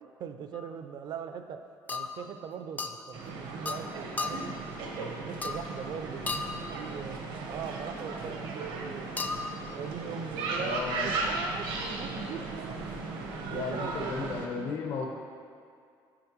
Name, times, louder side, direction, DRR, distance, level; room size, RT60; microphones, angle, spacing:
voice 1, 0.0-1.6 1.9-4.6 5.0-7.2 7.4-9.2 9.7-12.8 13.5-14.7, right 7 dB, 55° right, 8 dB, 0.4 m, -41 dB
sound 1, 0.5-0.7 1.9-2.3 2.8-3.0 3.6-3.9 4.2-4.6 5.4-5.8 6.3-6.7 9.2-9.6, left 4 dB, 20° left, 0.3 m, -35 dB
sound 2, 3.1-14.5, right 3 dB, 85° right, 1.0 m, -36 dB
voice 2, 10.6-11.2 13.5-15.1, left 5 dB, 70° left, 1 dB, 1.0 m, -35 dB
8.6 x 5.3 x 3.1 m, 2.2 s
cardioid pair, 115°, 8 cm